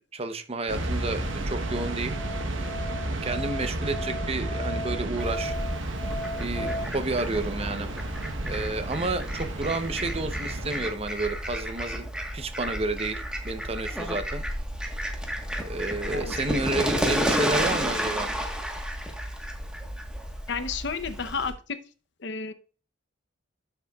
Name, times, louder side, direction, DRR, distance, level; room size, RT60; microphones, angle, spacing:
voice 1, 0.1-2.2 3.2-5.5 6.4-7.9 8.5-12.1 12.3-14.4 15.7-18.3, right 2 dB, 30° right, 9 dB, 0.8 m, -30 dB
sound 1, 0.7-10.8, right 1 dB, 80° right, 1.1 m, -32 dB
Musical instrument, 1.2-6.8, left 1 dB, 15° left, 0.5 m, -37 dB
Fowl, 5.2-21.5, equal, 5° right, 1.3 m, -32 dB
voice 2, 16.1-16.8 20.5-21.8 22.2-22.5, left 5 dB, 65° left, 11 dB, 0.8 m, -32 dB
12.5 x 6.7 x 2.4 m, 0.38 s
head